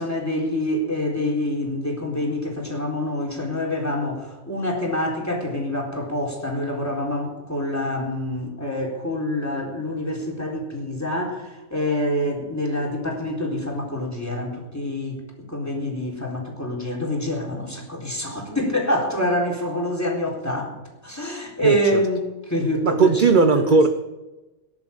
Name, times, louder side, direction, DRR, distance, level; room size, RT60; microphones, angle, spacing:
voice 1, 0.0-20.8 21.0-23.8, left 1 dB, 10° left, 1 dB, 4.0 m, -26 dB
voice 2, 21.6-22.0 22.8-23.9, right 4 dB, 40° right, 8 dB, 0.7 m, -18 dB
18.0 x 11.0 x 7.2 m, 1.1 s
omnidirectional pair, 1.6 m